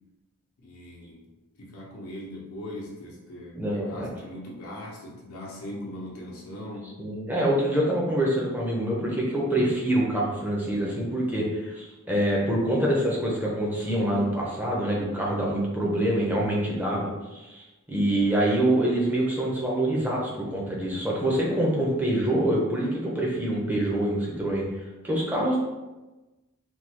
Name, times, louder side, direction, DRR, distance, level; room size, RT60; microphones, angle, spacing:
voice 1, 0.6-1.3 1.6-7.0, left 1 dB, 85° left, -4 dB, 0.7 m, -40 dB
voice 2, 3.5-4.1 7.0-17.1 17.5-24.6 25.0-25.6, right 1 dB, 10° right, -4 dB, 0.6 m, -25 dB
3.4 x 2.3 x 2.9 m, 1.1 s
head